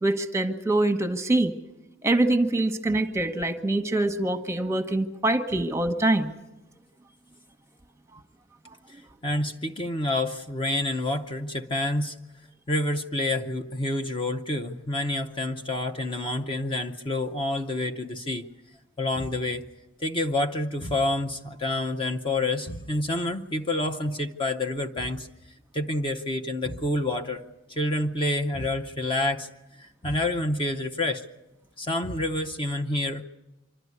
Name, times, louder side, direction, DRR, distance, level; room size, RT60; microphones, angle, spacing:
voice 1, 0.0-1.5 2.0-6.3, right 2 dB, 15° right, 8 dB, 1.1 m, -24 dB
voice 2, 8.9-12.2 12.7-18.5 19.0-19.7 20.0-25.3 25.7-27.4 27.7-29.5 29.8-31.3 31.8-33.2, left 2 dB, 25° left, 5 dB, 0.7 m, -28 dB
25.5 x 12.5 x 9.5 m, 1.1 s
head